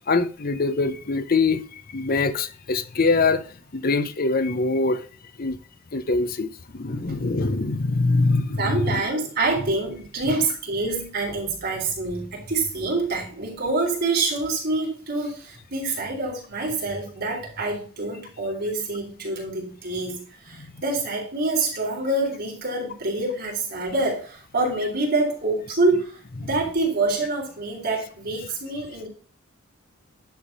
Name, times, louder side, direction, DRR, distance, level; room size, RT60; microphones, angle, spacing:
voice 1, 0.1-1.6 1.9-3.5 3.7-5.0 5.4-5.6 5.9-8.9 10.3-10.4 26.4-26.5, left 3 dB, 45° left, 0.7 m, -23 dB
voice 2, 8.6-29.1, right 2 dB, 50° right, 3.7 m, -26 dB
10.5 x 3.6 x 6.0 m
head